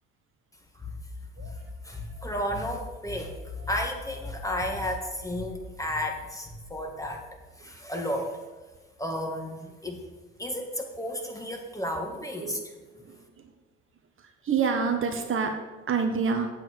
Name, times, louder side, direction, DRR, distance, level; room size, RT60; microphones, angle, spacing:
voice 1, 1.8-7.2 7.6-8.4 9.0-10.0 10.4-12.6, left 1 dB, 10° left, 2 dB, 2.0 m, -33 dB
voice 2, 14.5-15.5 15.9-16.5, right 5 dB, 40° right, 4 dB, 1.2 m, -26 dB
8.3 x 7.4 x 4.7 m, 1.2 s
hypercardioid pair, 65°, 31 cm